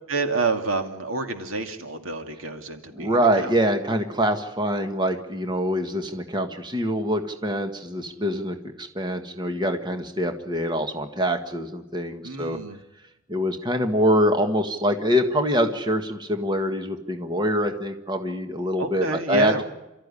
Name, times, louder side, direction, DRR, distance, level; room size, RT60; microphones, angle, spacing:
voice 1, 0.1-3.5 12.2-12.8 18.8-19.6, right 3 dB, 90° right, 5 dB, 2.4 m, -28 dB
voice 2, 2.9-12.6 13.3-19.5, equal, 20° right, 6 dB, 1.6 m, -24 dB
28.5 x 14.0 x 9.9 m, 0.98 s
head